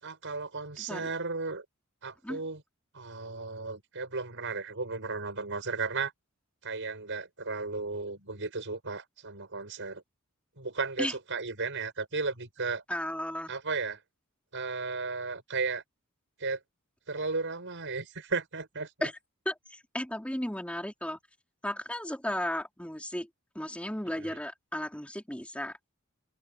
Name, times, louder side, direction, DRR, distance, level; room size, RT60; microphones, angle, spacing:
voice 1, 0.0-1.7 2.0-2.6 2.9-6.1 6.6-10.0 10.6-12.8 13.5-14.0 14.5-15.8 16.4-16.6 17.1-19.1 24.1-24.4, right 4 dB, 60° right, 6.9 m, -35 dB
voice 2, 12.9-13.5 19.0-19.1 19.5-21.2 21.6-23.3 23.5-25.7, left 1 dB, 5° left, 4.4 m, -34 dB
head